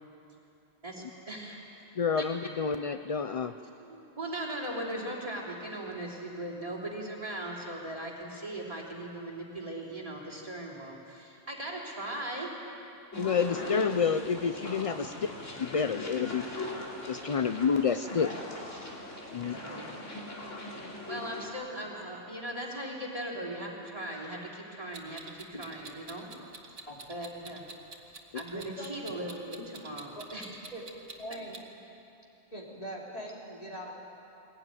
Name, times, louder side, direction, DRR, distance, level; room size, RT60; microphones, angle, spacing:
voice 1, 0.8-1.6 2.2-2.3 3.8-12.5 19.5-19.8 21.0-26.3 26.7-26.8 27.1-27.6 28.3-30.6, right 1 dB, 30° right, -3 dB, 3.3 m, -39 dB
voice 2, 2.0-3.5 13.2-15.1 15.6-16.4 16.7-18.3 19.3-19.6 28.3-28.4, left 6 dB, 55° left, 9 dB, 0.3 m, -29 dB
sound 1, 13.1-21.5, left 2 dB, 75° left, 3.5 m, -40 dB
voice 3, 19.3-19.9 26.9-27.0 28.5-29.0 30.2-30.3 30.7-30.8 31.2-31.6 32.5-33.9, equal, 30° left, -4 dB, 3.7 m, -42 dB
Clock, 24.9-31.6, right 3 dB, 70° right, 1.9 m, -47 dB
21.5 x 18.0 x 9.4 m, 2.9 s
omnidirectional pair, 1.3 m